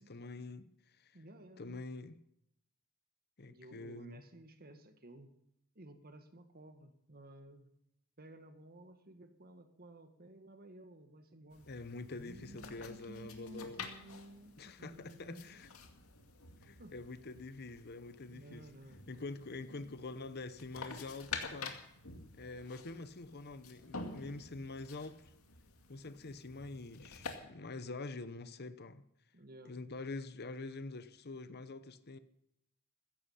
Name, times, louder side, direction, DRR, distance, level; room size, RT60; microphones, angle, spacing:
voice 1, 0.0-1.2 1.6-2.2 3.4-4.2 11.7-13.9 14.6-15.7 16.6-18.7 19.1-21.8 22.3-25.3 25.9-29.0 29.6-32.2, left 3 dB, 50° left, 0.9 m, -46 dB
voice 2, 1.1-1.8 3.5-5.3 5.7-7.7 8.2-11.7 12.1-15.6 16.8-16.9 18.3-19.1 29.3-29.8, right 1 dB, 45° right, 1.8 m, -54 dB
sound 1, 11.5-27.4, left 4 dB, 75° left, 2.3 m, -49 dB
16.0 x 14.0 x 5.7 m
head